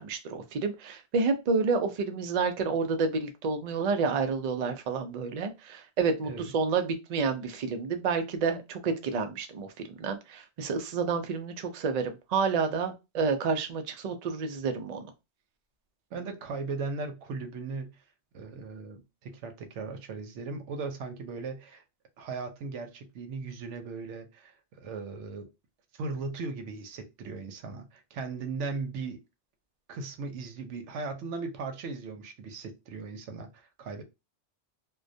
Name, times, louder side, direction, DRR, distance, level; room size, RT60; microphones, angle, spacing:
voice 1, 0.0-15.1, right 4 dB, 60° right, 0.4 m, -29 dB
voice 2, 6.2-6.5 16.1-18.0 18.3-21.8 22.2-25.5 26.0-29.2 29.9-34.0, right 4 dB, 85° right, 0.9 m, -38 dB
2.2 x 2.2 x 2.5 m
omnidirectional pair, 1.2 m